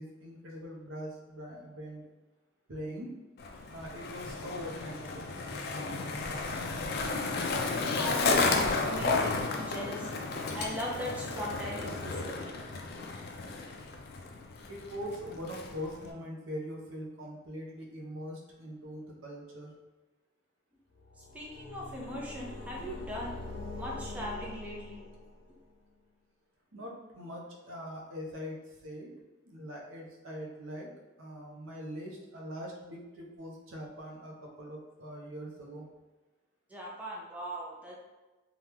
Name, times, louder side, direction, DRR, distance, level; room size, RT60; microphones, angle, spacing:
voice 1, 0.0-2.1 2.7-3.1 3.7-5.3 14.7-19.7 26.7-29.1 29.4-30.9 31.2-35.8, equal, 85° right, -1 dB, 0.7 m, -42 dB
Skateboard, 3.4-16.1, left 3 dB, 50° left, 0.4 m, -33 dB
voice 2, 7.7-8.5 8.8-10.1 10.5-12.5 21.3-23.3 23.8-25.0 36.7-37.9, equal, 5° right, -4 dB, 0.5 m, -39 dB
sound 1, 20.9-25.6, left 2 dB, 85° left, 0.6 m, -43 dB
2.9 x 2.3 x 3.4 m, 1.2 s
head